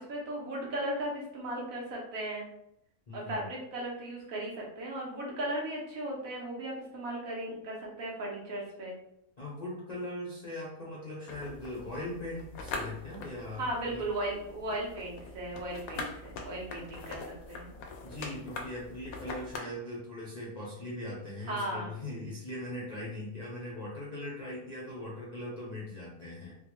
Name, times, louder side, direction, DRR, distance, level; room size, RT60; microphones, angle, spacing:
voice 1, 0.0-2.4 3.1-8.9 13.6-17.2 17.5-17.7 21.5-21.9, right 1 dB, 65° right, -3 dB, 1.3 m, -36 dB
voice 2, 9.4-14.1 18.0-26.5, left 1 dB, 40° left, -6 dB, 0.6 m, -40 dB
sound 1, 11.3-19.6, left 3 dB, 75° left, 1.0 m, -43 dB
4.0 x 2.2 x 3.0 m, 0.79 s
omnidirectional pair, 1.6 m